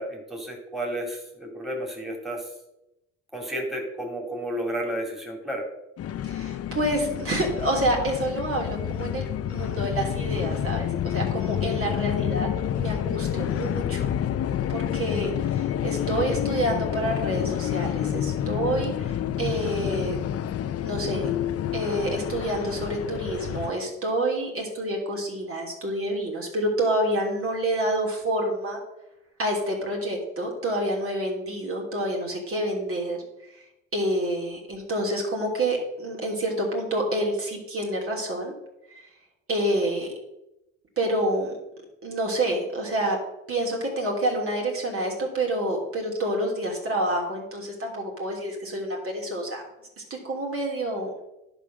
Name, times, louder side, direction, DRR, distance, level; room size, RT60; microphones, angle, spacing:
voice 1, 0.0-2.4 3.3-5.6, right 1 dB, ahead, 0 dB, 2.5 m, -32 dB
sound 1, 6.0-23.7, left 10 dB, 50° left, 0.6 m, -29 dB
voice 2, 6.2-12.5 12.8-14.1 14.7-20.2 20.8-21.3 21.7-28.8 29.4-33.2 33.5-33.6 33.9-38.5 38.9-39.1 39.5-40.1 41.0-41.5 42.0-43.2 43.5-49.6 50.0-51.1, right 1 dB, 45° right, -1 dB, 3.1 m, -28 dB
11.0 x 5.1 x 6.2 m, 0.92 s
cardioid pair, 90°, 30 cm